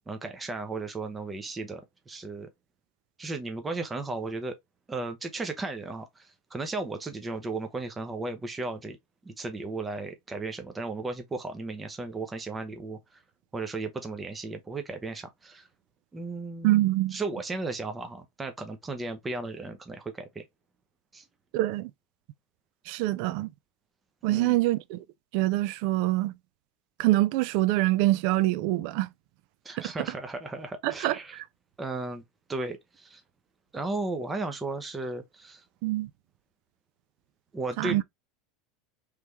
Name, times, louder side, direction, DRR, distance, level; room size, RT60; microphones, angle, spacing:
voice 1, 0.1-2.5 3.2-4.6 4.9-9.0 9.2-13.2 13.5-15.7 16.1-16.8 17.1-20.4 21.1-21.2 24.3-24.6 29.6-31.4 31.8-32.2 32.5-33.2 33.7-35.6 37.5-38.0, right 3 dB, 20° right, 0.7 m, -35 dB
voice 2, 16.6-17.2 21.5-21.9 22.9-23.5 24.2-25.0 25.3-26.3 27.0-29.1 30.8-31.4 35.8-36.1 37.8-38.0, right 17 dB, 65° right, 0.4 m, -25 dB
3.3 x 3.1 x 3.3 m
hypercardioid pair, 105°, 0 cm